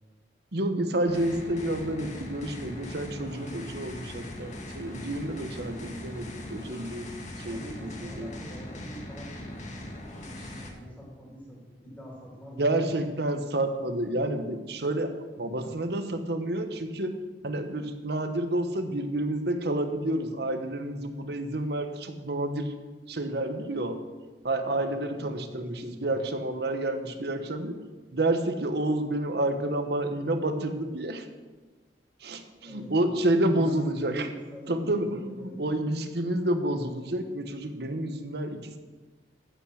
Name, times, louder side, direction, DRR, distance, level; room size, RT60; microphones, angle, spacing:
voice 1, 0.5-7.1 7.4-8.3 12.6-17.2 17.4-22.7 23.1-24.0 24.4-27.8 28.1-31.3 32.2-34.3 34.7-38.8, right 1 dB, 65° right, 8 dB, 1.1 m, -29 dB
sound 1, 1.0-10.7, left 1 dB, 45° left, 1.7 m, -40 dB
voice 2, 7.4-12.8 24.9-26.1 32.6-35.6, right 1 dB, 5° left, -4 dB, 3.0 m, -44 dB
14.5 x 5.8 x 6.4 m, 1.3 s
head